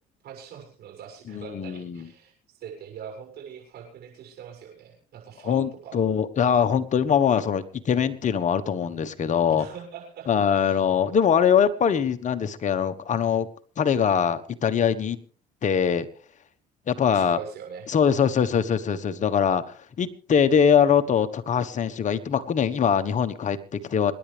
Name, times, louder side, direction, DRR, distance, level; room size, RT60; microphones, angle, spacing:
voice 1, 0.2-6.0 9.5-10.9 17.1-17.9, right 7 dB, 65° right, 2 dB, 7.2 m, -42 dB
voice 2, 1.3-2.1 5.4-9.7 10.3-13.5 13.8-15.2 15.6-16.1 16.9-17.4 17.9-24.1, left 7 dB, 45° left, 9 dB, 1.3 m, -22 dB
27.0 x 10.5 x 3.4 m, 0.43 s
supercardioid pair, 85°, 18 cm